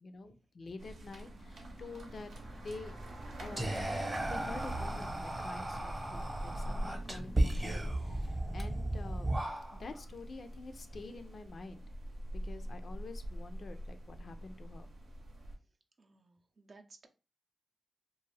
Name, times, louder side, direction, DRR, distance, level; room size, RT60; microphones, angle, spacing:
voice 1, 0.0-2.3 2.6-2.9 3.4-3.9 4.2-9.3 9.8-11.8 12.4-14.9, left 3 dB, 60° left, 8 dB, 0.4 m, -47 dB
sound 1, 0.8-15.6, right 1 dB, 80° right, 0.8 m, -44 dB
sound 2, 2.4-8.7, equal, ahead, 0.5 m, -54 dB
Whispering, 3.6-10.0, right 1 dB, 25° right, 0.8 m, -35 dB
voice 2, 16.0-17.1, right 3 dB, 55° right, 4 dB, 0.5 m, -58 dB
2.5 x 2.3 x 3.1 m, 0.32 s
cardioid pair, 60°, 0 cm